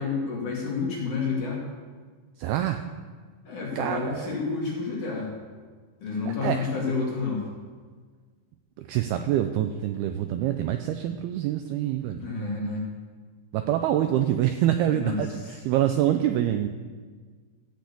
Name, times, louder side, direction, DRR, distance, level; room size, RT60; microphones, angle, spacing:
voice 1, 0.0-1.6 3.4-5.3 6.0-7.5 12.2-12.9 14.9-15.2, left 4 dB, 50° left, -3 dB, 3.4 m, -29 dB
voice 2, 2.4-2.9 3.8-4.4 6.3-6.7 8.8-12.3 13.5-16.7, right 11 dB, 90° right, 7 dB, 2.2 m, -26 dB
14.5 x 6.4 x 8.4 m, 1.5 s
omnidirectional pair, 5.2 m